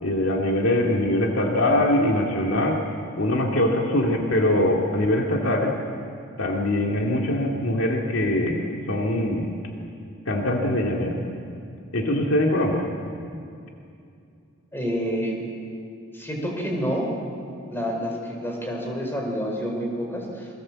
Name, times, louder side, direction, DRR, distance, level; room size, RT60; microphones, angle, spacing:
voice 1, 0.0-2.8 3.2-5.7 6.4-9.5 10.3-11.2 11.9-12.9, left 1 dB, 60° left, 0 dB, 2.4 m, -22 dB
voice 2, 14.7-15.4 16.1-17.1 17.7-20.5, equal, 10° left, 0 dB, 5.0 m, -28 dB
28.0 x 23.0 x 7.7 m, 2.5 s
head